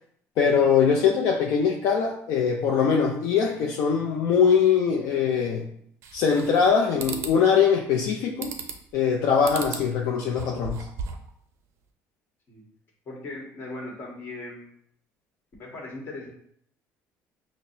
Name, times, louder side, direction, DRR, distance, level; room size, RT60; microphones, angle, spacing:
voice 1, 0.4-5.7 6.1-8.5 8.9-10.9, left 6 dB, 65° left, 0 dB, 0.4 m, -22 dB
sound 1, 6.0-6.7 7.0-7.4 8.4-8.9 9.4-9.9 10.3-11.3, right 5 dB, 55° right, 0.5 m, -35 dB
voice 2, 13.1-14.7 15.6-16.3, left 2 dB, 35° left, -2 dB, 1.2 m, -38 dB
5.8 x 2.0 x 2.6 m, 0.66 s
cardioid pair, 150°, 6 cm